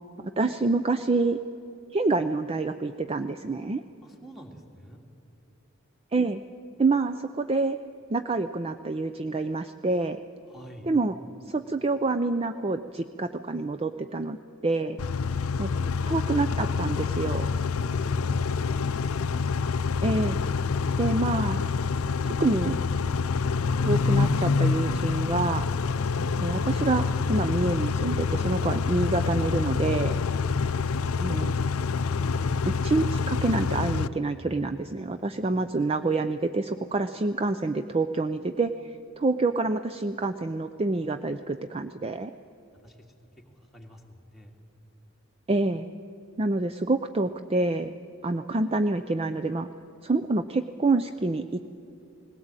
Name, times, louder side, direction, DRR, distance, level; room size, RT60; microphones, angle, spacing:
voice 1, 0.4-1.4 1.9-3.8 6.1-6.4 6.8-7.8 8.1-10.2 10.8-11.1 11.5-14.4 14.6-15.0 15.6-15.7 16.1-17.5 20.0-20.4 21.0-21.6 22.2-22.8 23.8-25.6 26.4-30.1 31.2-31.5 32.7-38.9 39.2-42.3 45.5-45.9 46.4-47.9 48.2-49.7 50.0-51.7, right 3 dB, 25° right, 10 dB, 0.4 m, -27 dB
voice 2, 4.0-5.0 10.5-10.9 15.9-16.1 17.9-18.9 30.5-31.6 42.8-43.1 43.5-44.7, equal, ahead, 3 dB, 2.1 m, -48 dB
Car / Idling / Accelerating revving vroom, 15.0-34.1, left 5 dB, 85° left, 0.6 m, -26 dB
19.5 x 17.0 x 8.9 m, 2.7 s
head